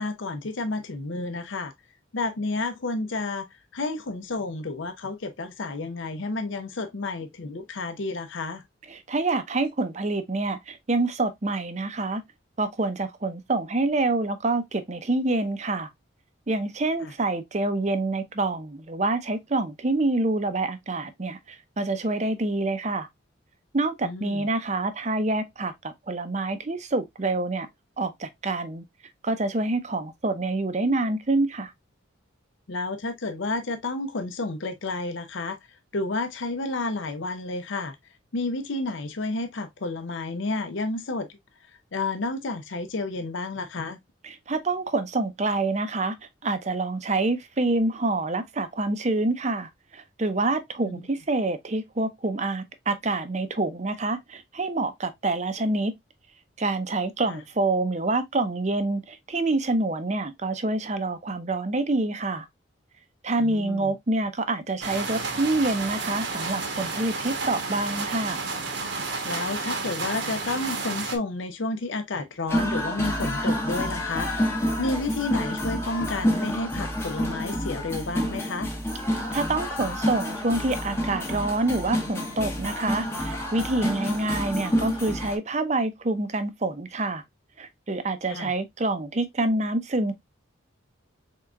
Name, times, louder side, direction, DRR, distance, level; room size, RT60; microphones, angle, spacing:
voice 1, 0.0-1.7 2.1-3.5 3.7-8.6 17.0-17.1 24.0-24.5 32.7-35.6 35.9-38.0 38.3-41.3 41.9-44.0 50.9-51.0 57.3-57.4 63.4-63.9 69.2-74.3 74.8-78.7 88.3-88.5, left 3 dB, 70° left, 0.6 m, -31 dB
voice 2, 8.9-12.2 12.6-15.9 16.5-23.1 23.7-27.7 28.0-28.8 29.2-31.7 44.2-46.2 46.4-55.9 56.6-62.5 63.2-68.4 79.1-87.2 87.6-90.1, right 2 dB, 35° right, 0.6 m, -27 dB
sound 1, 64.8-71.2, right 3 dB, 60° right, 1.0 m, -31 dB
sound 2, 72.5-85.4, equal, 10° left, 0.8 m, -28 dB
4.5 x 3.7 x 2.3 m
head